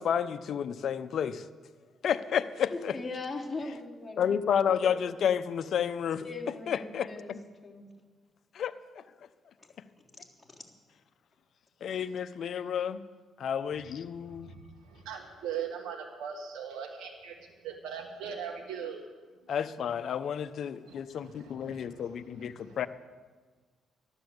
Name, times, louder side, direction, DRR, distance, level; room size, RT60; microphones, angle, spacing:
voice 1, 0.0-1.4 2.0-3.0 4.2-6.2 6.7-7.4 8.5-9.0 11.8-13.0 13.4-14.5 19.5-22.9, left 8 dB, 65° left, 12 dB, 0.7 m, -31 dB
voice 2, 2.7-4.3 6.2-7.3 7.6-7.8 10.4-10.6, left 3 dB, 15° left, -4 dB, 3.6 m, -39 dB
voice 3, 14.3-19.0 20.8-22.1 22.4-22.8, right 7 dB, 85° right, 1 dB, 1.3 m, -40 dB
12.5 x 11.5 x 8.0 m, 1.5 s
cardioid pair, 90°, 0 cm